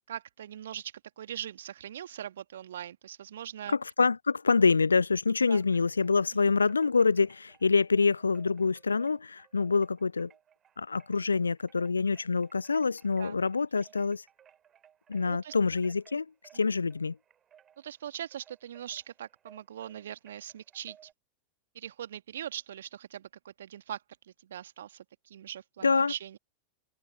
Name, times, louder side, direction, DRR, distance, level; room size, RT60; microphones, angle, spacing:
voice 1, 0.1-3.7 5.5-5.6 6.4-6.5 13.2-13.4 15.2-15.5 17.8-21.0 21.8-24.0 24.4-26.4, right 10 dB, 60° right, 1.8 m, -41 dB
voice 2, 3.7-10.3 10.8-14.2 15.1-16.3 16.5-17.2 25.8-26.1, left 4 dB, 75° left, 0.4 m, -26 dB
Wind chime, 5.6-6.2 6.6-21.1, right 9 dB, 25° right, 4.2 m, -61 dB
open air
figure-of-eight pair, 90°, 0 cm